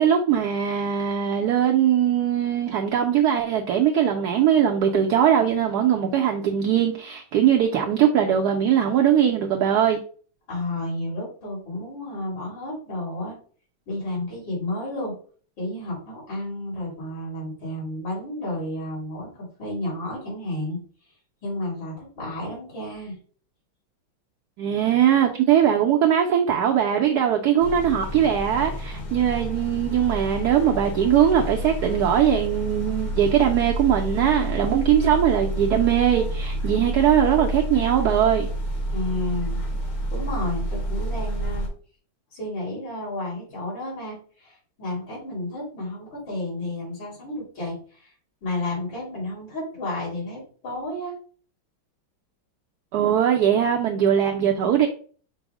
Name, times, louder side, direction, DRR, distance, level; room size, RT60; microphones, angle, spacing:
voice 1, 0.0-10.0 24.6-38.5 52.9-54.9, right 9 dB, 70° right, 1.0 m, -20 dB
voice 2, 10.5-13.4 13.9-15.2 15.6-20.8 21.4-23.2 38.9-39.6 40.1-41.7 42.3-48.1 48.4-51.2, left 1 dB, 75° left, 3.2 m, -31 dB
sound 1, 27.6-41.7, right 1 dB, 45° left, 1.3 m, -29 dB
5.3 x 2.0 x 4.7 m
omnidirectional pair, 2.1 m